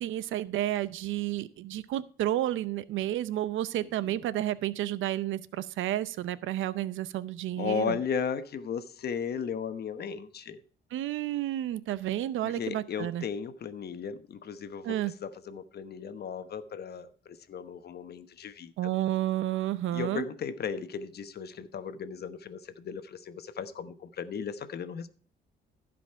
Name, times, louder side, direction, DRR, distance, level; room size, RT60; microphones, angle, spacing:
voice 1, 0.0-8.0 10.9-13.2 14.8-15.1 18.8-20.3, right 13 dB, 80° right, 17 dB, 0.6 m, -31 dB
voice 2, 7.6-10.6 12.4-15.0 15.2-18.7 19.9-25.1, left 6 dB, 55° left, 11 dB, 1.1 m, -36 dB
15.5 x 5.2 x 4.5 m, 0.43 s
cardioid pair, 90°, 20 cm